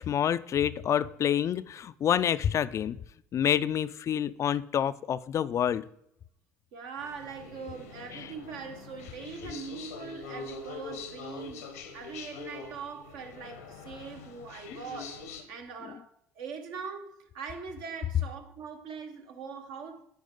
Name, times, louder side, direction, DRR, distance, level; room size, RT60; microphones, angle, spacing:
voice 1, 0.0-3.0 3.3-5.9 8.1-8.3, left 9 dB, 40° left, 0.3 m, -28 dB
voice 2, 6.7-11.7 11.9-20.1, right 5 dB, 65° right, 1.1 m, -42 dB
sound 1, 7.0-15.4, left 4 dB, 85° left, 1.0 m, -44 dB
9.2 x 4.8 x 3.8 m
hypercardioid pair, 60°, 8 cm